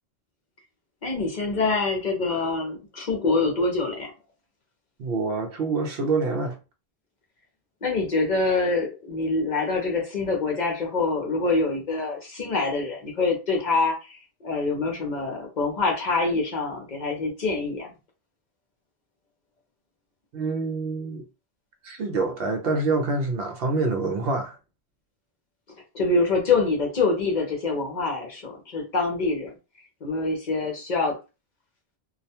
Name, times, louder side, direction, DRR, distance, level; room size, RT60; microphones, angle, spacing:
voice 1, 1.0-4.1 7.8-17.9 25.9-29.5 30.0-31.2, left 3 dB, 50° left, 0.6 m, -25 dB
voice 2, 5.0-6.6 20.3-21.2 21.8-24.6, right 3 dB, 65° right, 0.8 m, -26 dB
2.3 x 2.1 x 2.7 m
omnidirectional pair, 1.1 m